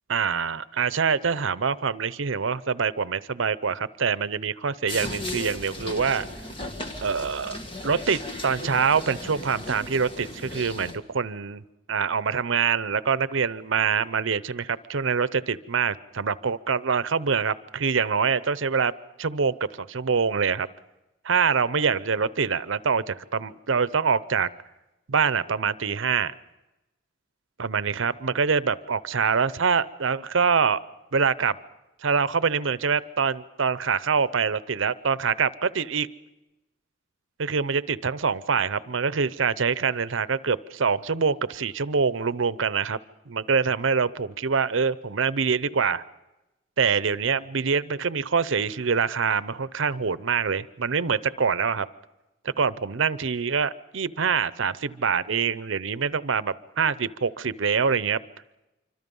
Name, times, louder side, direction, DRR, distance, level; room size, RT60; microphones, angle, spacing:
voice 1, 0.1-6.3 7.0-7.6 7.8-11.6 11.9-18.9 19.2-20.7 21.2-24.5 25.1-26.3 27.6-30.8 31.1-31.6 32.0-36.1 37.4-43.0 43.3-46.0 46.8-51.9 52.4-58.2, right 5 dB, 75° right, 16 dB, 0.7 m, -25 dB
sound 1, 4.9-11.0, left 1 dB, 25° left, 1.8 m, -36 dB
27.0 x 24.5 x 5.4 m, 0.99 s
head